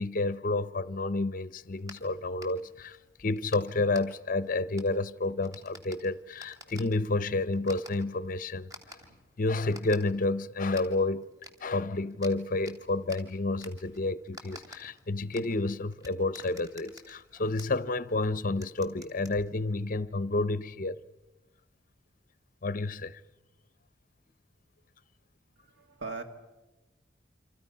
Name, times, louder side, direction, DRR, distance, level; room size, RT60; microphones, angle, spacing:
voice 1, 0.0-9.0 9.4-11.3 11.6-21.0 22.6-23.2, left 2 dB, 45° left, 0.7 m, -30 dB
sound 1, 1.6-20.0, equal, 20° right, 2.9 m, -53 dB
voice 2, 25.6-26.2, right 4 dB, 85° right, 2.4 m, -39 dB
28.5 x 26.0 x 5.6 m
head